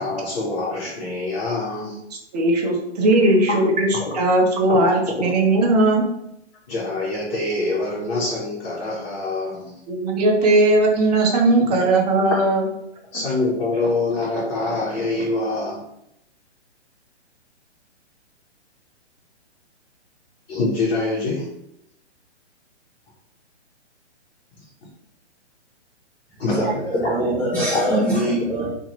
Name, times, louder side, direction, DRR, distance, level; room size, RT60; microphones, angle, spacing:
voice 1, 0.0-2.0 3.2-3.6 6.7-9.8 11.7-11.8 13.1-15.8 20.5-21.5 26.4-26.8 27.7-27.8, left 2 dB, 55° left, -5 dB, 1.0 m, -25 dB
voice 2, 2.3-6.1 9.9-12.6, right 2 dB, 35° right, 0 dB, 0.7 m, -18 dB
voice 3, 26.5-28.7, right 1 dB, 5° left, -9 dB, 0.6 m, -23 dB
2.7 x 2.5 x 3.0 m, 0.78 s
hypercardioid pair, 150°, 35 cm